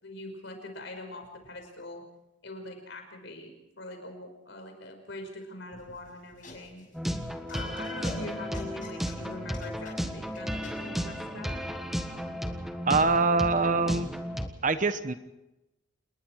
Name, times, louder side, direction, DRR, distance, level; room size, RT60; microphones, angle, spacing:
voice 1, 0.0-2.0 2.4-6.9 7.5-11.7, left 2 dB, 65° left, 4 dB, 5.4 m, -42 dB
sound 1, 5.7-10.9, left 2 dB, 40° left, 6.5 m, -48 dB
sound 2, 6.9-14.5, equal, ahead, 1.4 m, -34 dB
voice 2, 12.8-14.1 14.6-15.1, right 3 dB, 40° right, 11 dB, 1.0 m, -24 dB
28.5 x 21.0 x 4.7 m, 0.96 s
head